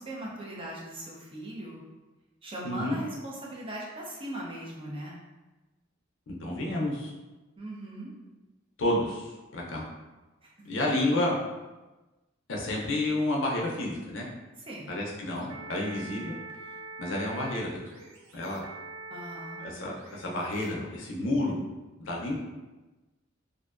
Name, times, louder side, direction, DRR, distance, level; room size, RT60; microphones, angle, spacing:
voice 1, 0.0-1.8 2.4-5.2 7.6-8.1 10.6-10.7 14.6-14.9 19.1-19.6, right 1 dB, 25° right, -4 dB, 0.5 m, -39 dB
voice 2, 2.6-3.0 6.3-7.1 8.8-9.8 10.7-11.3 12.5-14.3 14.9-16.3 17.0-17.8 18.3-18.6 19.6-21.6 22.0-22.3, left 1 dB, 65° left, -2 dB, 0.5 m, -30 dB
sound 1, 15.3-20.7, right 3 dB, 80° right, 0.4 m, -44 dB
2.5 x 2.1 x 2.4 m, 1.1 s
head